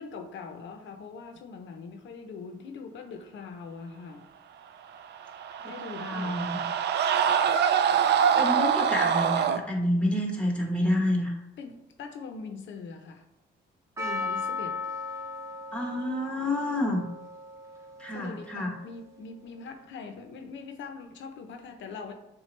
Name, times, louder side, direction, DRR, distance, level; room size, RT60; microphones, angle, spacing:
voice 1, 0.0-4.3 5.6-6.5 11.6-13.2 14.0-14.8 18.1-22.1, left 5 dB, 70° left, 5 dB, 0.8 m, -42 dB
sound 1, 5.1-9.6, right 8 dB, 60° right, 0.4 m, -24 dB
voice 2, 6.0-6.5 8.4-11.3 15.7-17.0 18.0-18.7, left 1 dB, 5° left, 0 dB, 1.2 m, -28 dB
Percussion, 14.0-18.9, left 3 dB, 15° right, 0.8 m, -37 dB
6.6 x 2.4 x 3.3 m, 0.89 s
cardioid pair, 90°, 20 cm